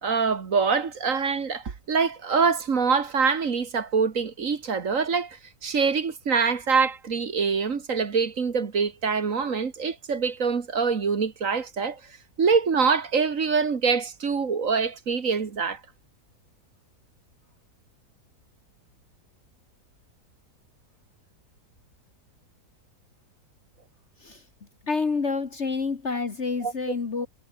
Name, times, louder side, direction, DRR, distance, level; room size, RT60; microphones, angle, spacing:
voice 1, 0.0-12.0 12.4-15.8 26.6-26.7, right 5 dB, 50° right, 2.0 m, -25 dB
voice 2, 24.8-27.3, left 4 dB, 45° left, 1.8 m, -28 dB
omnidirectional pair, 1.8 m